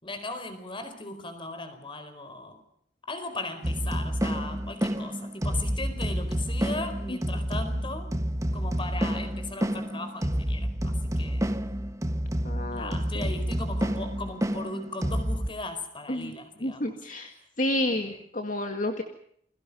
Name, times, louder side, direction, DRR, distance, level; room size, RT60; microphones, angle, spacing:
voice 1, 0.0-2.6 3.1-8.1 8.5-11.5 12.7-16.9 17.9-18.2, left 2 dB, 30° left, 9 dB, 4.5 m, -38 dB
sound 1, 3.6-15.5, equal, 20° right, 1.2 m, -29 dB
voice 2, 7.1-7.4 12.4-13.3 16.1-16.3 16.6-17.3 17.6-19.0, left 1 dB, 45° left, 5 dB, 2.0 m, -30 dB
29.5 x 22.0 x 5.5 m, 0.68 s
head